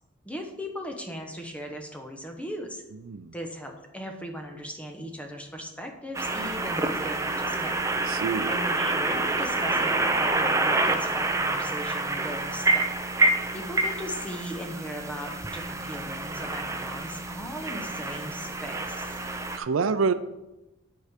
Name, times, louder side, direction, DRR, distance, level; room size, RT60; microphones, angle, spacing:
voice 1, 0.2-2.8 3.3-7.8 8.5-12.9 13.5-19.1, equal, 5° left, 3 dB, 0.9 m, -38 dB
voice 2, 3.0-3.3 8.1-8.6 19.5-20.1, right 5 dB, 80° right, 12 dB, 0.4 m, -26 dB
sound 1, 6.1-19.6, right 2 dB, 15° right, 0.5 m, -27 dB
9.1 x 4.7 x 5.0 m, 0.99 s
head